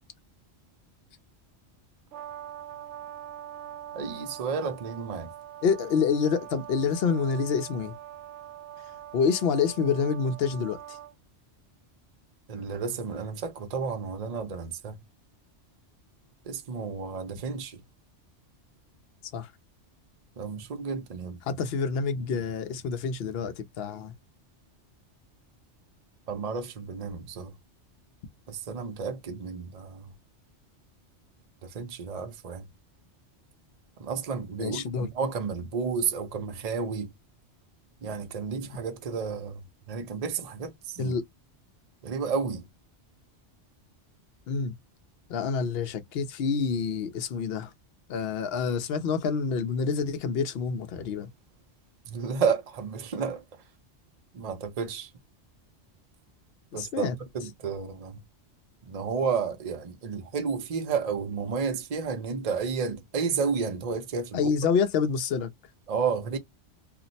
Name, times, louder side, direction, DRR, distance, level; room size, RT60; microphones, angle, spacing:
Brass instrument, 2.1-11.1, right 12 dB, 70° right, 0.9 m, -43 dB
voice 1, 3.9-5.3 12.5-15.0 16.5-17.8 20.4-21.4 26.3-27.5 28.5-30.1 31.6-32.7 34.0-37.1 38.0-41.1 42.0-42.6 52.1-53.4 54.3-55.1 56.7-57.1 57.3-58.2 58.9-64.5 65.9-66.4, right 5 dB, 45° right, 0.5 m, -31 dB
voice 2, 5.6-7.9 9.1-11.0 19.3-19.5 21.4-24.1 34.6-35.1 41.0-41.2 44.5-44.7 45.3-47.7 48.1-51.3 56.7-57.2 64.3-65.5, left 5 dB, 65° left, 0.8 m, -27 dB
2.4 x 2.0 x 3.9 m
omnidirectional pair, 1.2 m